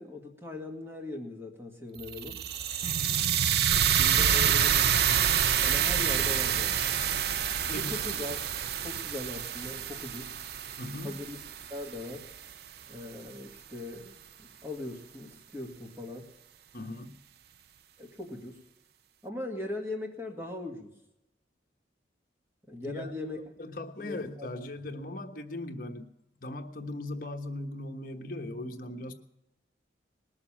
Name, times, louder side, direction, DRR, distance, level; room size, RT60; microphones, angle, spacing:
voice 1, 0.0-2.4 3.7-5.2 5.6-6.8 7.7-8.4 8.8-10.3 11.0-11.4 11.7-12.3 12.9-16.3 18.0-18.6 19.2-20.9 22.7-23.4 24.0-24.5, left 2 dB, 15° right, 1 dB, 2.1 m, -40 dB
sound 1, 2.0-12.1, right 9 dB, 55° right, 0.5 m, -27 dB
voice 2, 10.8-11.2 16.7-17.2 22.8-26.1 26.4-29.1, left 1 dB, 50° left, 4 dB, 1.2 m, -39 dB
20.0 x 7.1 x 8.6 m, 0.90 s
head